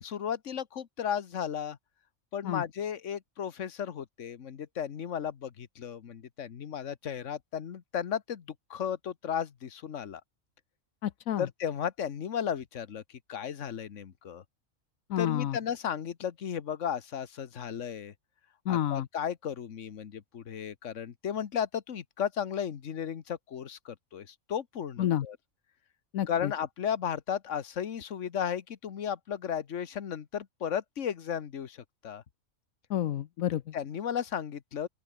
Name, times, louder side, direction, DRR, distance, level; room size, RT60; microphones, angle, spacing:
voice 1, 0.0-1.8 2.3-10.2 11.4-14.4 15.2-18.1 18.7-25.4 26.3-32.2 33.7-34.9, left 8 dB, 65° left, 1.5 m, -34 dB
voice 2, 11.0-11.5 15.1-15.6 18.7-19.1 25.0-25.3 26.1-26.5 32.9-33.6, left 11 dB, 80° left, 1.2 m, -29 dB
open air
omnidirectional pair, 1.4 m